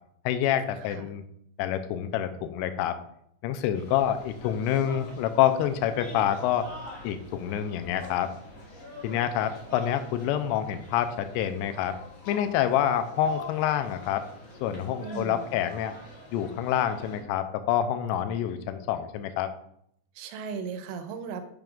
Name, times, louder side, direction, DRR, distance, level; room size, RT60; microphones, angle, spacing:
voice 1, 0.3-1.2 1.6-3.0 3.4-6.7 7.0-8.3 9.0-11.9 12.3-14.3 14.6-15.9 16.3-19.5, left 10 dB, 85° left, 9 dB, 2.5 m, -27 dB
voice 2, 0.8-1.1 15.0-15.6 20.2-21.4, right 5 dB, 85° right, 8 dB, 2.9 m, -37 dB
sound 1, 3.7-17.2, left 1 dB, 60° left, 1.9 m, -45 dB
9.0 x 5.2 x 2.4 m, 0.71 s
omnidirectional pair, 5.2 m